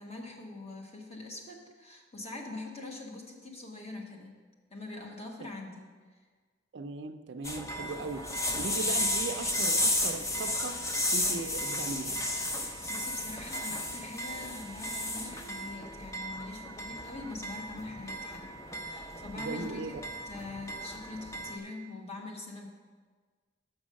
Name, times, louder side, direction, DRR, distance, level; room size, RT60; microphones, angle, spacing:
voice 1, 0.0-4.3 4.7-5.9 12.9-18.5 18.8-22.7, left 2 dB, 35° left, 0 dB, 1.3 m, -43 dB
voice 2, 6.7-10.8 11.1-12.2 19.4-20.0, right 3 dB, 65° right, 9 dB, 0.5 m, -38 dB
sound 1, 7.4-21.6, left 1 dB, 15° left, 0.6 m, -34 dB
6.5 x 6.2 x 6.3 m, 1.5 s
head